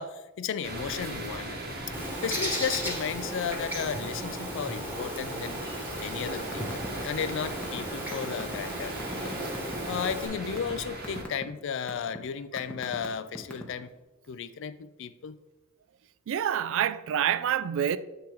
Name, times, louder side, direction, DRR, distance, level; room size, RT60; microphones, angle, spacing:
voice 1, 0.0-1.9 2.2-5.6 6.0-9.0 9.9-13.9 14.3-15.4, left 7 dB, 60° left, 0.4 m, -34 dB
sound 1, 0.6-11.2, right 1 dB, 50° right, 1.0 m, -39 dB
Bird, 1.9-10.3, equal, 10° right, 1.3 m, -36 dB
sound 2, 6.4-6.9 7.1-9.7 10.3-10.7 11.0-11.4 11.9-12.2 12.6-13.8, left 1 dB, 5° left, 0.9 m, -39 dB
voice 2, 16.3-18.0, right 9 dB, 65° right, 0.3 m, -27 dB
7.7 x 3.6 x 4.4 m
head